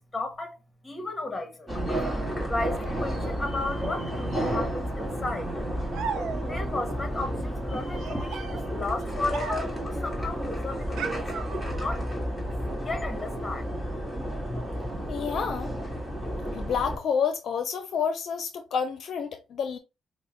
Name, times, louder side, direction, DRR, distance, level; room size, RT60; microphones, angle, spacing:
voice 1, 0.0-1.7 2.5-5.6 6.4-12.1 12.8-13.7, left 2 dB, 20° left, 1.2 m, -34 dB
sound 1, 1.7-17.0, equal, 5° right, 1.6 m, -31 dB
sound 2, 5.9-6.8 7.9-9.9 11.0-12.1, right 6 dB, 85° right, 0.5 m, -37 dB
voice 2, 15.1-15.7 16.5-19.8, left 6 dB, 60° left, 0.6 m, -29 dB
5.2 x 2.1 x 3.1 m
cardioid pair, 90°, 0 cm